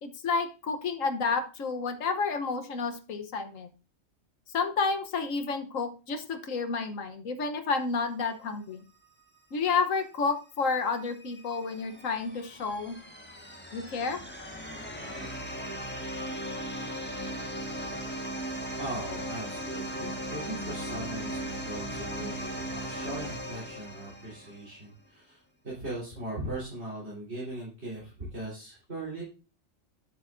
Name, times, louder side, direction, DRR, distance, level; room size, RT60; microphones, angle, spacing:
voice 1, 0.0-3.7 4.5-8.8 9.5-12.9 13.7-14.2 23.2-23.3, left 4 dB, 85° left, 8 dB, 1.4 m, -30 dB
sound 1, 10.9-24.7, right 1 dB, 10° left, 1.4 m, -38 dB
voice 2, 18.8-29.2, right 1 dB, 55° right, -7 dB, 4.2 m, -39 dB
12.0 x 7.8 x 2.6 m, 0.33 s
omnidirectional pair, 1.3 m